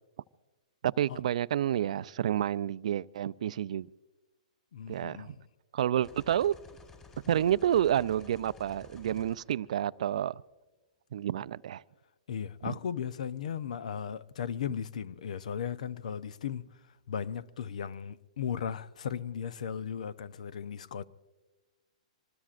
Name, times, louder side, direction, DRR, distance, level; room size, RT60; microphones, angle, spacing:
voice 1, 0.8-3.9 4.9-5.4 5.7-6.5 7.3-10.4 11.1-11.8 12.6-12.7, right 10 dB, 65° right, 0.4 m, -29 dB
voice 2, 4.7-5.3 12.3-16.7 17.1-21.0, left 8 dB, 70° left, 0.7 m, -36 dB
sound 1, 6.0-10.2, left 4 dB, 20° left, 4.5 m, -54 dB
25.5 x 20.5 x 2.5 m
hypercardioid pair, 140°, 4 cm